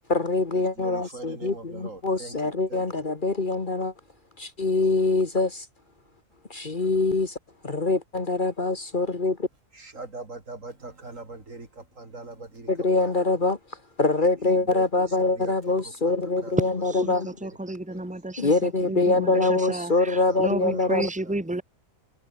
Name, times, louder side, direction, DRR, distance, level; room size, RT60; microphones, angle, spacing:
voice 1, 0.1-3.9 4.4-5.7 6.5-7.4 7.6-9.5 12.7-13.6 14.0-17.3 18.4-21.1, left 3 dB, 40° left, 1.7 m, -24 dB
voice 2, 0.8-2.8 9.7-12.7 13.0-13.1 14.6-14.9 15.3-15.5 16.4-16.6 17.4-17.5 17.9-18.1 20.3-21.0 21.2-21.3, right 2 dB, 70° right, 4.4 m, -41 dB
voice 3, 17.0-18.5 18.9-21.6, right 2 dB, 5° right, 1.9 m, -32 dB
omnidirectional pair, 1.4 m